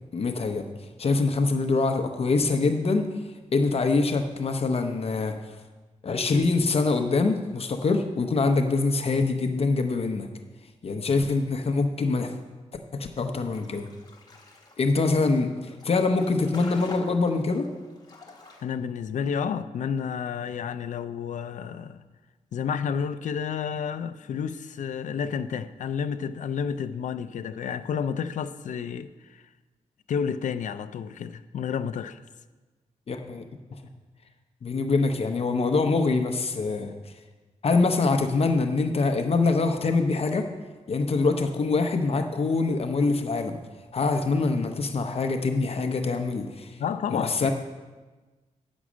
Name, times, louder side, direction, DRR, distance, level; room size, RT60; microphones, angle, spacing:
voice 1, 0.1-0.7 1.0-3.1 3.5-5.4 6.0-10.3 10.8-12.3 12.9-13.9 14.8-17.7 33.1-33.4 34.6-36.9 37.6-40.5 40.9-43.6 43.9-46.8 47.1-47.5, left 3 dB, 50° left, 0.8 m, -24 dB
sound 1, 13.5-18.6, left 3 dB, 30° left, 1.6 m, -46 dB
voice 2, 18.6-22.0 22.5-29.4 30.1-32.2 46.8-47.5, left 7 dB, 75° left, 0.5 m, -30 dB
9.6 x 6.2 x 6.2 m
wide cardioid pair, 110°, 13 cm